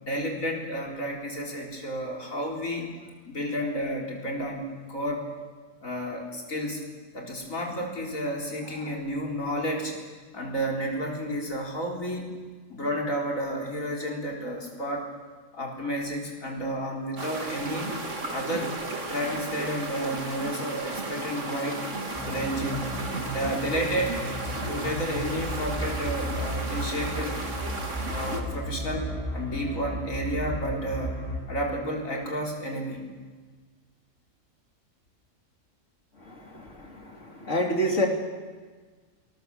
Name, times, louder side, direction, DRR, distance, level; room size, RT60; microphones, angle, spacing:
voice 1, 0.0-2.9 3.2-5.3 5.8-6.8 7.1-10.0 10.3-12.3 12.7-15.1 15.5-17.9 18.3-18.7 19.1-21.8 22.2-22.8 23.3-24.2 24.7-27.4 28.0-31.2 31.5-33.0, equal, 85° left, -1 dB, 4.5 m, -31 dB
sound 1, 17.2-28.4, right 2 dB, 65° right, 2.7 m, -34 dB
sound 2, 22.1-31.4, equal, 10° left, 5.2 m, -34 dB
voice 2, 36.3-38.1, equal, 65° left, 1 dB, 3.6 m, -28 dB
27.5 x 20.5 x 7.1 m, 1.4 s
omnidirectional pair, 1.4 m